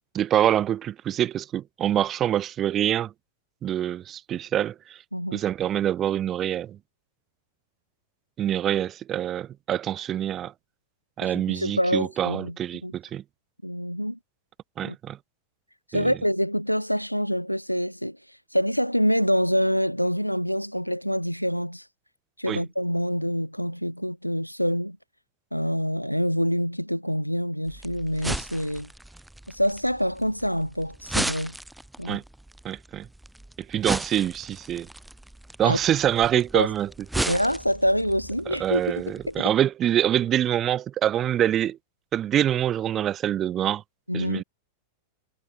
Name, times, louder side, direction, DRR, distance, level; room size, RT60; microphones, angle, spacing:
voice 1, 0.1-3.1 3.6-5.0 5.3-6.8 8.4-10.5 11.2-13.2 14.8-15.2 15.9-16.1 22.5-22.6 32.1-32.2 32.6-33.1 33.6-34.9 35.6-36.9 37.2-37.4 38.5-41.8 42.1-43.8 44.1-44.4, right 11 dB, 30° right, 4.1 m, -25 dB
voice 2, 11.2-12.5 12.8-12.9 13.6-14.2 14.8-15.0 15.9-18.2 18.5-21.8 22.4-25.0 25.5-28.9 29.5-31.6 32.0-32.2 35.6-35.8 36.5-36.7 37.3-39.5 44.1-44.4, equal, 90° left, 3.9 m, -26 dB
sound 1, 27.7-39.4, right 1 dB, 5° right, 2.0 m, -36 dB
figure-of-eight pair, 90°, 0 cm